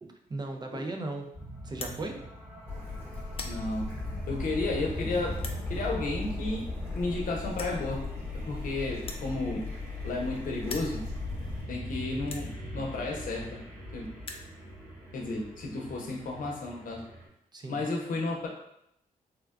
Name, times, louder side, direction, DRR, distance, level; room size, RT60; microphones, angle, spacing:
voice 1, 0.0-1.3 1.6-2.2 17.5-17.8, right 2 dB, 30° right, 3 dB, 0.4 m, -37 dB
sound 1, 1.3-17.3, equal, 90° right, 1.3 m, -41 dB
sound 2, 1.7-2.0 2.7-2.9 3.2-3.6 4.3-4.4 5.3-5.6 6.7-6.8 7.0-7.1 7.5-7.8 9.0-10.3 10.6-10.9 11.6-11.7 12.2-12.5 13.4-13.5 13.7-13.8 14.1-14.5, left 4 dB, 40° left, 0.4 m, -41 dB
Bird / Stream, 2.7-11.6, left 3 dB, 15° left, 1.1 m, -38 dB
voice 2, 3.4-3.9 4.3-5.3 5.7-6.6 6.9-8.0 8.5-9.6 10.0-11.0 11.7-13.6 13.9-14.1 15.1-17.0 17.7-18.5, left 2 dB, 70° left, -1 dB, 0.7 m, -32 dB
3.4 x 2.2 x 2.4 m, 0.77 s
cardioid pair, 85°, 15 cm